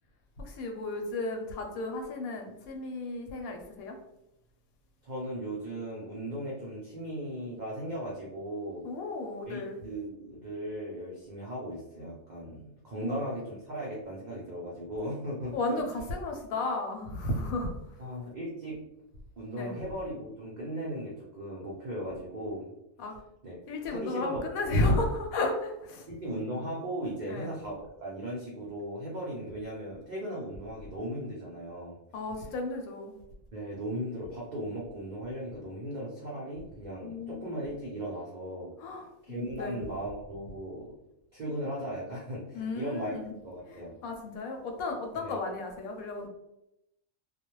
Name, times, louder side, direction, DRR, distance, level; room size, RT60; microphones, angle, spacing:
voice 1, 0.4-3.9 8.8-9.8 13.0-13.2 15.5-17.8 19.6-19.7 23.0-23.1 23.7-26.1 27.3-27.5 32.1-33.2 37.0-37.5 38.8-39.8 42.5-43.3 43.7-46.3, left 2 dB, 80° left, 3 dB, 1.0 m, -33 dB
voice 2, 5.0-8.9 9.4-15.8 18.0-18.8 19.4-22.7 23.4-23.6 23.9-24.4 26.1-31.9 33.5-38.7 39.2-40.9 41.3-43.1 43.4-43.9 45.2-45.4, right 1 dB, 65° right, -4 dB, 0.4 m, -37 dB
2.3 x 2.1 x 3.0 m, 0.84 s
omnidirectional pair, 1.5 m